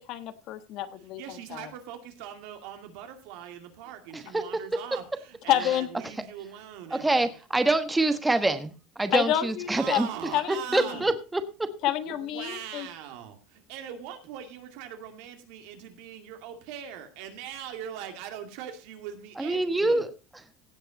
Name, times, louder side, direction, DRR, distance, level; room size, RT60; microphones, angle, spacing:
voice 1, 0.1-1.2 1.5-1.7 5.5-5.9 9.1-10.0 10.3-11.0 11.8-12.9, left 12 dB, 55° left, 11 dB, 1.2 m, -28 dB
voice 2, 1.2-7.3 9.7-11.1 12.1-20.0, right 10 dB, 70° right, 6 dB, 2.5 m, -41 dB
voice 3, 6.9-10.1 10.7-11.7 19.4-20.1, right 2 dB, 10° right, 10 dB, 1.1 m, -25 dB
17.0 x 5.8 x 5.2 m, 0.33 s
supercardioid pair, 135°, 0 cm